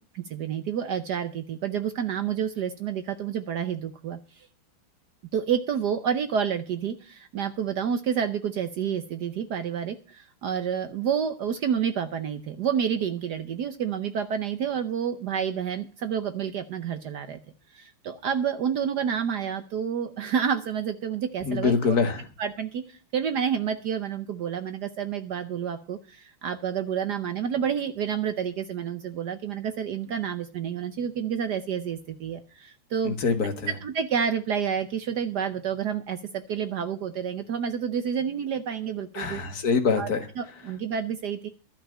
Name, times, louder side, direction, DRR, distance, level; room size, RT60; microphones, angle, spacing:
voice 1, 0.1-4.5 5.3-17.4 17.7-21.9 22.4-33.2 33.8-39.4 39.9-40.1 40.4-41.5, right 8 dB, 65° right, 10 dB, 1.2 m, -29 dB
voice 2, 21.5-22.2 33.0-33.7 39.1-40.2, left 5 dB, 50° left, 5 dB, 2.0 m, -24 dB
12.0 x 5.8 x 8.5 m, 0.36 s
omnidirectional pair, 2.3 m